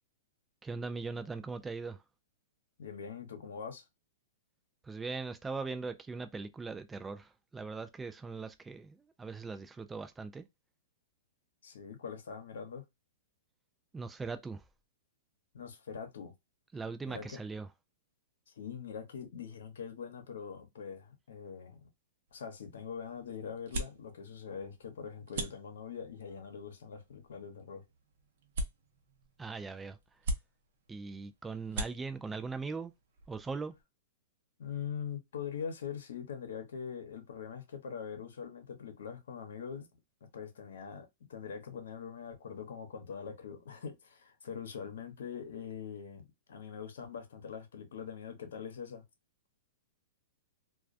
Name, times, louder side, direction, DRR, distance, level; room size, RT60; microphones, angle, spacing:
voice 1, 0.6-2.0 4.8-10.5 13.9-14.6 16.7-17.7 29.4-30.0 30.9-32.9 33.3-33.7, right 4 dB, 10° right, 0.3 m, -40 dB
voice 2, 2.8-3.8 11.6-12.8 15.5-16.3 17.1-17.4 18.6-21.8 22.3-27.8 34.6-39.9 40.3-49.0, left 7 dB, 80° left, 0.8 m, -43 dB
sound 1, 22.3-33.8, right 1 dB, 60° right, 0.7 m, -44 dB
2.2 x 2.2 x 2.5 m
hypercardioid pair, 150°, 0 cm